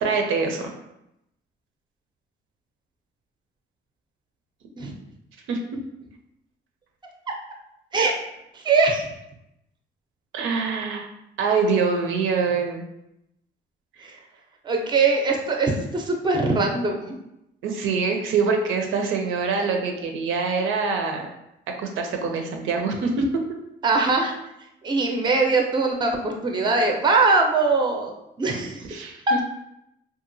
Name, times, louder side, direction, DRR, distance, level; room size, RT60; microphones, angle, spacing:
voice 1, 0.0-0.7 5.5-5.6 10.3-11.1 11.4-12.8 17.6-21.3 21.7-23.3 28.9-29.4, right 5 dB, 80° right, 3 dB, 0.5 m, -24 dB
voice 2, 8.5-9.1 14.0-14.2 14.6-17.2 23.8-24.4 24.8-29.1, right 3 dB, 25° right, 2 dB, 0.5 m, -22 dB
2.8 x 2.4 x 2.6 m, 0.83 s
cardioid pair, 90°, 20 cm